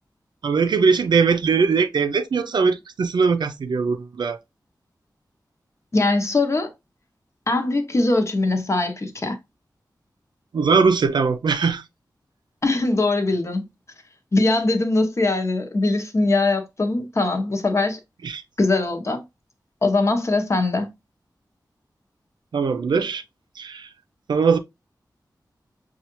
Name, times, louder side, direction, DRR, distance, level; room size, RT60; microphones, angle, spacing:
voice 1, 0.4-4.4 10.5-11.8 18.2-18.4 22.5-23.2 23.6-23.9 24.3-24.6, right 5 dB, 85° right, 0.5 m, -20 dB
voice 2, 5.9-6.7 7.5-9.4 12.6-13.7 14.3-18.0 18.6-19.2 19.8-20.9, left 2 dB, 40° left, 0.8 m, -21 dB
5.5 x 2.4 x 2.9 m
wide cardioid pair, 100°, 7 cm